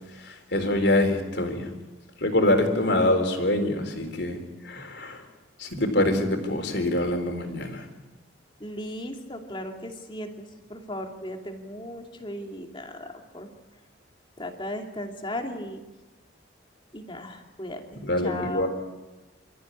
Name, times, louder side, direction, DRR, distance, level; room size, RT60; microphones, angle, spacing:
voice 1, 0.2-1.7 2.2-5.2 5.6-7.8 17.9-18.7, left 1 dB, 60° left, 5 dB, 4.0 m, -25 dB
voice 2, 8.6-10.4 10.7-13.5 14.4-15.8 16.9-18.7, left 1 dB, 25° left, 3 dB, 2.6 m, -36 dB
28.0 x 14.5 x 9.8 m, 1.2 s
head